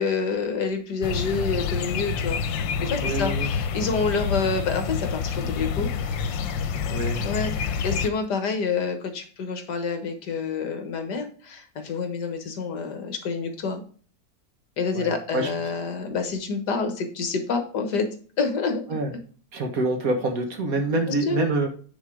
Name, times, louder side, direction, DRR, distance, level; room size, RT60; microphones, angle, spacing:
voice 1, 0.0-2.4 2.8-5.9 7.2-13.8 14.8-18.1 18.4-18.8 21.2-21.4, left 4 dB, 65° left, 6 dB, 1.8 m, -28 dB
sound 1, 1.0-8.1, left 6 dB, 90° left, 1.4 m, -28 dB
voice 2, 3.0-3.5 6.9-7.3 14.9-15.5 18.9-19.1 19.5-21.7, right 2 dB, 55° right, 3 dB, 1.8 m, -26 dB
9.0 x 4.1 x 4.9 m, 0.42 s
omnidirectional pair, 1.9 m